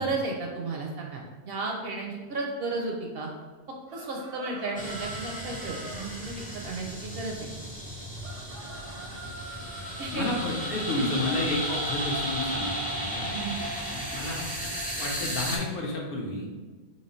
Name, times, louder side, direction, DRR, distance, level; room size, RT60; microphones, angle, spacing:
voice 1, 0.0-3.3 3.9-7.5 10.0-10.3 11.0-11.1 13.3-13.6, right 3 dB, 65° right, 0 dB, 0.7 m, -33 dB
sound 1, 3.9-6.1 8.2-10.2, right 3 dB, 85° right, 1.1 m, -44 dB
sound 2, 4.8-15.6, equal, 10° left, 0.4 m, -34 dB
voice 2, 10.1-13.3 13.9-14.4 15.0-16.5, left 2 dB, 55° left, -2 dB, 0.8 m, -31 dB
3.1 x 2.8 x 4.1 m, 1.4 s
omnidirectional pair, 1.2 m